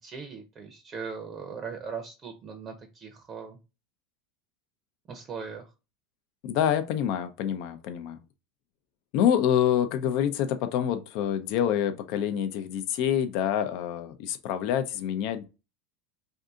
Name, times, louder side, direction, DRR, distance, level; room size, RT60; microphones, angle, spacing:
voice 1, 0.0-3.6 5.1-5.6, right 5 dB, 35° right, 0.7 m, -39 dB
voice 2, 6.4-8.2 9.1-15.4, left 9 dB, 60° left, 0.5 m, -27 dB
2.6 x 2.5 x 3.6 m
supercardioid pair, 110°, 0 cm